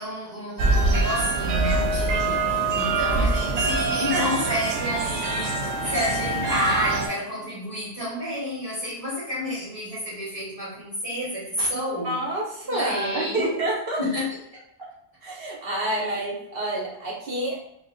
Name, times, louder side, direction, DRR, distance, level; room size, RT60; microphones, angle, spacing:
voice 1, 0.0-12.2 12.6-13.5 14.0-14.4 15.9-16.2, equal, 35° right, -10 dB, 1.1 m, -30 dB
sound 1, 0.6-7.1, right 3 dB, 85° right, 0.8 m, -24 dB
voice 2, 12.0-14.0 14.8-14.9 15.2-17.6, right 1 dB, 65° right, -3 dB, 1.1 m, -28 dB
4.7 x 2.2 x 2.4 m, 0.79 s
omnidirectional pair, 1.0 m